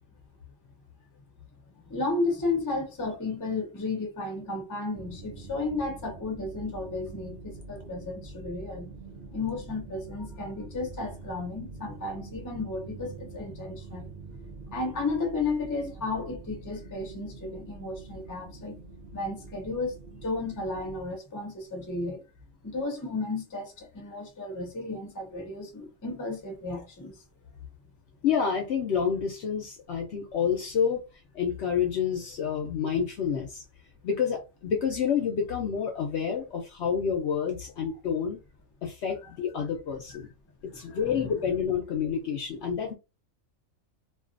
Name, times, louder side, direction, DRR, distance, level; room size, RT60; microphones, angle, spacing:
voice 1, 1.8-8.9 9.3-14.1 14.7-18.8 19.1-22.2 22.6-27.2 39.2-39.3 39.6-39.7 40.7-41.3, left 3 dB, 25° left, 0.4 m, -33 dB
sound 1, 4.9-21.0, right 3 dB, 55° right, 0.6 m, -45 dB
voice 2, 28.2-31.0 31.3-33.6 34.0-38.4 38.8-40.3 40.7-42.9, left 7 dB, 65° left, 0.7 m, -28 dB
2.4 x 2.3 x 2.4 m
omnidirectional pair, 1.5 m